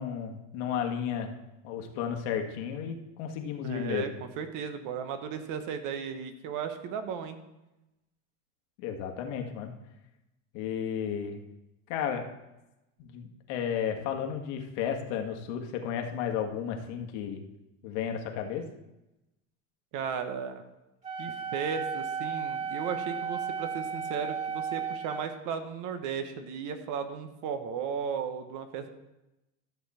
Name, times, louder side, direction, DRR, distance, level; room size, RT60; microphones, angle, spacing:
voice 1, 0.0-1.4 1.6-4.2 8.8-9.7 10.5-11.4 11.9-12.3 13.0-17.5 17.8-18.6, left 8 dB, 75° left, 4 dB, 1.7 m, -33 dB
voice 2, 3.6-7.4 19.9-20.6 21.2-28.9, right 7 dB, 55° right, 8 dB, 1.3 m, -35 dB
Wind instrument woodwind instrument, 21.0-25.3, right 6 dB, 20° right, 3.0 m, -34 dB
13.0 x 7.1 x 4.3 m, 0.95 s
supercardioid pair, 140°, 37 cm